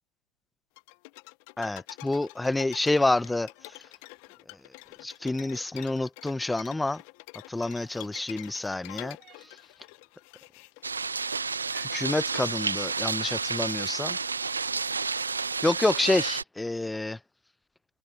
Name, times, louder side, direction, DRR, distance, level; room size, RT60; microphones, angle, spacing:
sound 1, 0.8-11.2, left 31 dB, 30° left, 0.7 m, -47 dB
voice 1, 1.6-3.5 5.0-7.0 7.5-9.2 11.7-14.2 15.6-17.2, left 2 dB, 5° left, 0.3 m, -28 dB
sound 2, 5.3-5.6 7.7-8.1 9.2-9.6 11.3-11.4 12.0-12.4, right 12 dB, 15° right, 6.4 m, -59 dB
sound 3, 10.8-16.4, right 4 dB, 75° right, 0.8 m, -30 dB
figure-of-eight pair, 140°, 0 cm